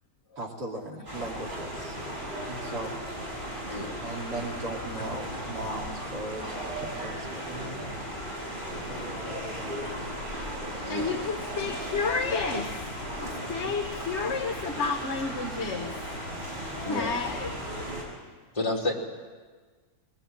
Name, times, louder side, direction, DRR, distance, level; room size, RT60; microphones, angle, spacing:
voice 1, 0.3-2.0 2.5-3.0 4.0-8.0 8.7-10.4, right 1 dB, 90° right, -1 dB, 3.4 m, -38 dB
sound 1, 1.1-18.0, equal, 30° right, 6.9 m, -36 dB
voice 2, 10.9-16.2 16.8-17.6, left 4 dB, 45° left, 4 dB, 1.7 m, -31 dB
voice 3, 18.5-18.9, left 2 dB, 20° left, -1 dB, 3.1 m, -30 dB
23.5 x 20.5 x 8.9 m, 1.4 s
omnidirectional pair, 1.7 m